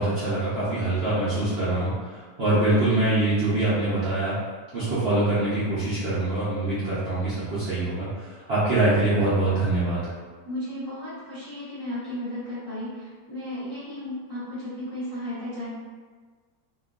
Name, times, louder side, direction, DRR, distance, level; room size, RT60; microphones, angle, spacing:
voice 1, 0.0-4.4 4.7-10.1, right 2 dB, 60° right, -12 dB, 0.7 m, -24 dB
voice 2, 10.4-15.7, left 1 dB, 25° left, -13 dB, 0.6 m, -34 dB
2.8 x 2.4 x 2.3 m, 1.5 s
omnidirectional pair, 1.8 m